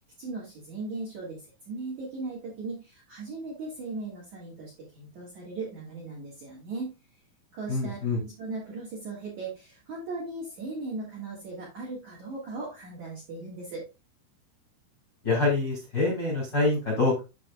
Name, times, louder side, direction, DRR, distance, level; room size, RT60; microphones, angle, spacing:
voice 1, 0.2-6.9 7.5-13.9, right 3 dB, 60° right, -1 dB, 2.0 m, -38 dB
voice 2, 7.7-8.2 15.2-17.2, left 3 dB, 50° left, -2 dB, 1.3 m, -25 dB
8.4 x 6.0 x 2.3 m, 0.27 s
omnidirectional pair, 5.7 m